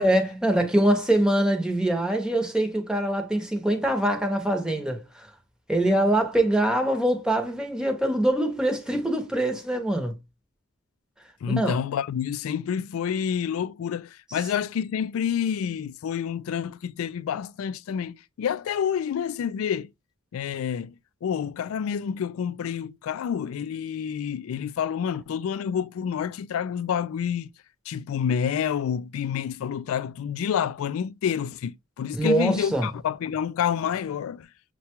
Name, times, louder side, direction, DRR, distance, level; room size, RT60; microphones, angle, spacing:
voice 1, 0.0-5.3 5.7-10.2 11.5-11.8 32.1-32.9, right 1 dB, 5° right, 0.8 m, -24 dB
voice 2, 11.4-19.9 20.3-20.9 21.2-27.5 27.9-34.5, left 8 dB, 75° left, 0.3 m, -28 dB
6.7 x 2.2 x 2.9 m
head